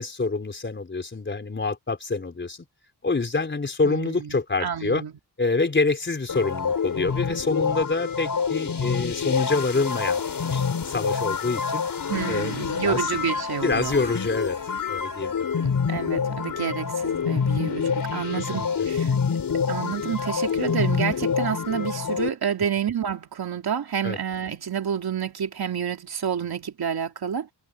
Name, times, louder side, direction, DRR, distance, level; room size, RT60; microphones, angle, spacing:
voice 1, 0.0-2.6 3.0-5.0 5.4-10.2 10.5-11.8 12.3-13.1 13.6-14.6 14.9-15.5 18.3-18.7 24.0-24.2, left 3 dB, 25° left, 4.3 m, -26 dB
voice 2, 3.8-5.1 12.1-13.9 15.6-19.1 19.7-27.5, right 8 dB, 60° right, 2.7 m, -29 dB
sound 1, 6.3-22.3, left 6 dB, 50° left, 5.1 m, -27 dB
wide cardioid pair, 175°, 42 cm